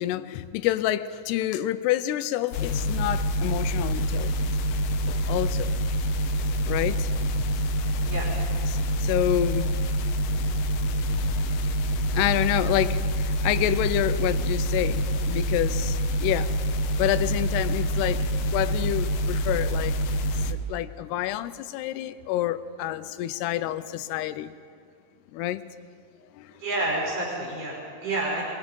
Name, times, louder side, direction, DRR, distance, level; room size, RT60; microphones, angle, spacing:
voice 1, 0.0-4.5 5.1-5.8 6.7-7.1 8.7-9.7 11.7-11.8 12.1-16.5 17.0-19.9 20.5-24.5 25.3-25.6 26.3-26.5, left 13 dB, 85° left, 13 dB, 2.8 m, -28 dB
sound 1, 2.5-20.5, equal, 70° left, 2.3 m, -26 dB
voice 2, 26.6-28.4, right 2 dB, 55° right, -4 dB, 6.0 m, -29 dB
25.0 x 22.0 x 5.4 m, 2.2 s
omnidirectional pair, 4.6 m